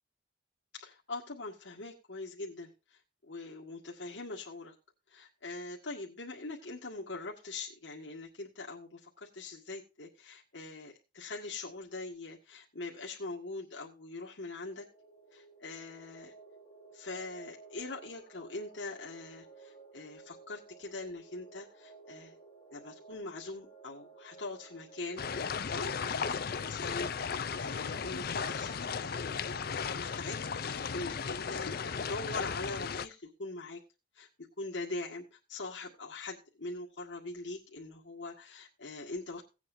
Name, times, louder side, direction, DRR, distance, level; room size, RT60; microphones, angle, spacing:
voice 1, 0.7-4.7 5.1-14.9 15.3-16.3 16.9-22.4 22.7-33.8 34.1-34.3 34.6-39.4, left 3 dB, 85° left, -3 dB, 1.8 m, -43 dB
sound 1, 14.5-28.8, right 4 dB, 25° left, 2.2 m, -56 dB
sound 2, 25.2-33.1, left 6 dB, 55° left, 0.5 m, -35 dB
17.5 x 8.3 x 2.7 m, 0.29 s
head